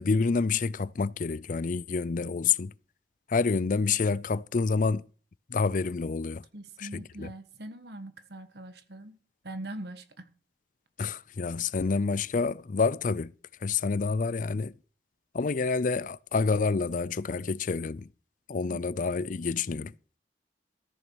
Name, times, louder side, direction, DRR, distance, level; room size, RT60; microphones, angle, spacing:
voice 1, 0.0-2.7 3.3-5.0 5.5-6.4 6.8-7.3 11.0-13.3 13.6-14.7 15.3-18.1 18.5-19.9, left 4 dB, 50° left, 0.5 m, -28 dB
voice 2, 6.5-9.2 9.4-10.3 18.7-18.8, right 1 dB, 65° right, 1.5 m, -42 dB
14.0 x 7.1 x 6.2 m
head